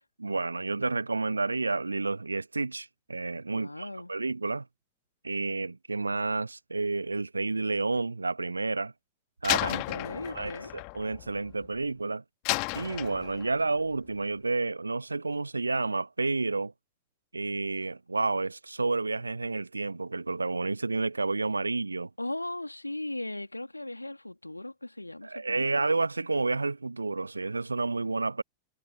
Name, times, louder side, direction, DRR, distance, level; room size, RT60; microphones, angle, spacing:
voice 1, 0.2-4.7 5.2-8.9 9.4-9.8 10.3-12.2 12.7-16.7 17.3-22.1 25.2-28.4, right 3 dB, 80° right, 1.0 m, -30 dB
voice 2, 3.5-4.1 9.7-10.7 22.2-25.9, left 1 dB, 85° left, 2.2 m, -38 dB
Slam, 9.4-11.9 12.5-13.7, left 40 dB or more, 45° left, 2.0 m, -33 dB
figure-of-eight pair, 90°, 0 cm